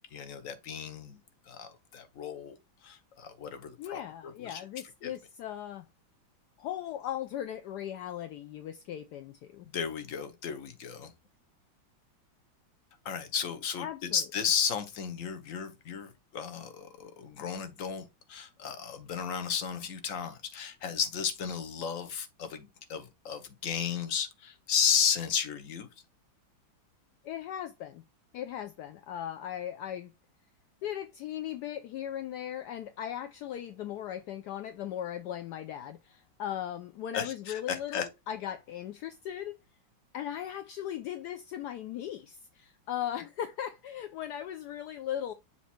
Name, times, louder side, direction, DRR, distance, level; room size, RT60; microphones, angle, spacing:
voice 1, 0.1-1.2 1.5-2.6 2.8-4.7 5.0-5.1 9.6-11.1 13.0-25.9 37.1-38.1, left 7 dB, 50° left, 1.1 m, -34 dB
voice 2, 3.8-5.9 6.6-9.7 13.8-14.2 27.2-28.0 28.3-30.1 30.8-39.6 40.1-45.3, left 10 dB, 75° left, 1.0 m, -38 dB
7.2 x 3.0 x 4.4 m
omnidirectional pair, 2.2 m